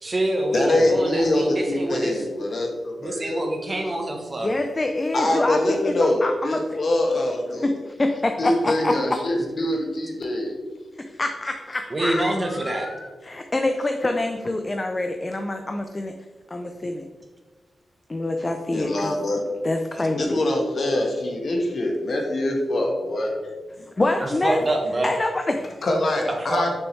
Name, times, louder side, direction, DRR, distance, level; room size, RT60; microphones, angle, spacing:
voice 1, 0.0-2.2 3.0-4.5 11.9-12.9 24.2-25.1 26.5-26.7, right 1 dB, 30° right, 2 dB, 1.0 m, -26 dB
voice 2, 0.5-3.4 5.1-7.7 8.4-10.6 18.7-19.4 20.1-23.3 23.8-23.9 25.8-26.7, left 1 dB, 50° left, 1 dB, 1.3 m, -24 dB
voice 3, 4.4-5.6 6.0-6.6 7.6-8.9 11.2-16.1 16.5-17.1 18.1-19.1 19.6-20.4 24.0-24.6 25.0-25.8, left 2 dB, 25° left, 5 dB, 0.4 m, -26 dB
6.4 x 6.1 x 3.2 m, 1.4 s
wide cardioid pair, 135°, 0 cm